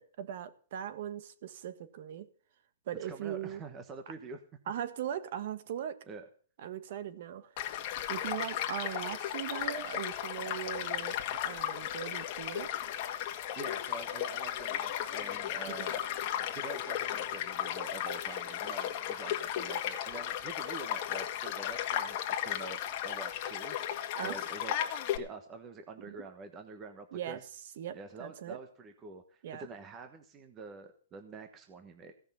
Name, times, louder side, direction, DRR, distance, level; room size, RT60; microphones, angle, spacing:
voice 1, 0.0-2.3 2.9-3.6 4.7-6.0 6.6-7.5 8.1-11.2 11.4-12.7 15.6-15.8 24.1-24.4 26.0-26.3 27.1-27.4 27.8-28.6 29.4-29.7, right 10 dB, 50° right, 1.6 m, -39 dB
voice 2, 3.0-4.4 6.1-6.2 13.6-16.1 16.5-24.7 25.2-27.4 27.9-32.1, right 3 dB, 20° right, 1.2 m, -46 dB
Child speech kid speaking / Stream / Car passing by, 7.6-25.2, left 11 dB, 35° left, 1.7 m, -35 dB
16.5 x 6.5 x 9.5 m
hypercardioid pair, 165°, 0 cm